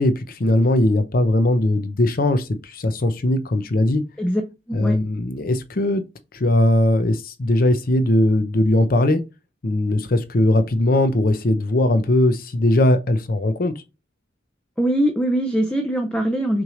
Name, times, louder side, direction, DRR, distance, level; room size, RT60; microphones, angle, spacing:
voice 1, 0.0-4.0 4.7-6.0 6.3-9.2 9.6-13.7, left 1 dB, 50° left, 0.6 m, -19 dB
voice 2, 14.8-16.6, right 1 dB, 5° left, 0.5 m, -21 dB
6.0 x 3.2 x 2.5 m
head